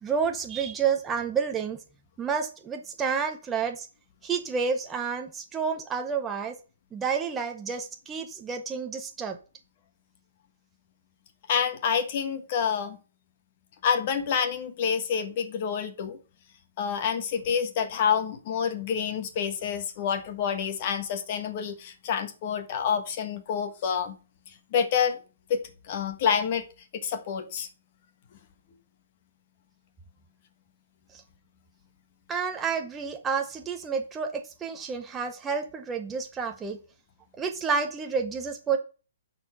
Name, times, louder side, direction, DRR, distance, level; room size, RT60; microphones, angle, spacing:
voice 1, 0.0-1.8 2.2-3.9 4.2-6.5 6.9-9.4 32.3-36.8 37.4-38.8, right 6 dB, 10° right, 4 dB, 0.7 m, -30 dB
voice 2, 11.5-13.0 13.8-16.2 16.8-24.2 24.7-25.2 25.5-26.6 26.9-27.7, left 7 dB, 35° left, 7 dB, 1.5 m, -28 dB
11.0 x 4.5 x 5.8 m, 0.34 s
hypercardioid pair, 170°, 0 cm